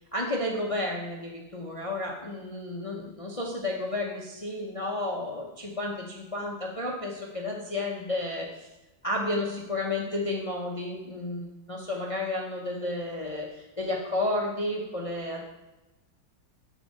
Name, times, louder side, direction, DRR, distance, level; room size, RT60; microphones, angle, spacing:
voice 1, 0.1-8.7 9.0-15.4, left 2 dB, 50° left, -1 dB, 0.4 m, -32 dB
7.2 x 4.1 x 6.5 m, 1.0 s
omnidirectional pair, 2.0 m